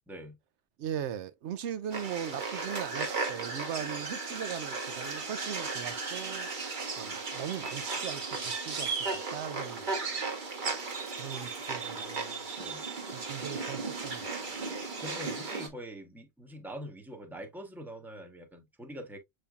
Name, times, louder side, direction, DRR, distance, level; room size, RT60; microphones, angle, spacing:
voice 1, 0.8-6.5 7.0-9.9 11.2-12.5 13.1-14.6, right 9 dB, 80° right, 0.9 m, -39 dB
sound 1, 1.9-15.7, right 4 dB, 45° right, 1.1 m, -35 dB
voice 2, 15.0-19.2, equal, ahead, 0.8 m, -44 dB
6.9 x 3.2 x 2.3 m
omnidirectional pair, 1.2 m